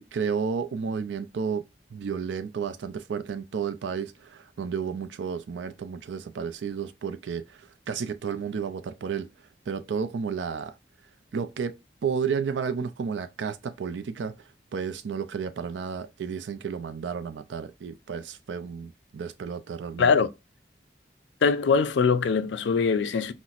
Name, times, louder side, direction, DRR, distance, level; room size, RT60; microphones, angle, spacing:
voice 1, 0.0-1.6 1.9-9.3 9.7-10.7 11.3-11.7 12.0-14.3 14.7-20.1, right 6 dB, 90° right, 0.4 m, -32 dB
voice 2, 21.4-23.3, left 5 dB, 85° left, 0.4 m, -22 dB
5.6 x 2.1 x 2.4 m
head